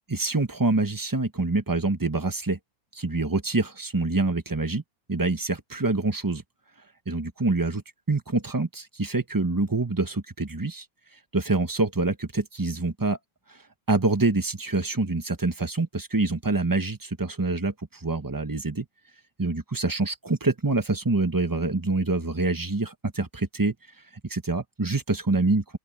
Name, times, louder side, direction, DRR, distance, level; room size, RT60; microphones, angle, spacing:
voice 1, 0.1-2.6 2.9-4.8 5.1-6.4 7.1-10.9 11.3-13.2 13.5-13.6 13.9-18.8 19.4-23.7 24.3-25.8, right 3 dB, 20° right, 0.6 m, -26 dB
open air
omnidirectional pair, 2.1 m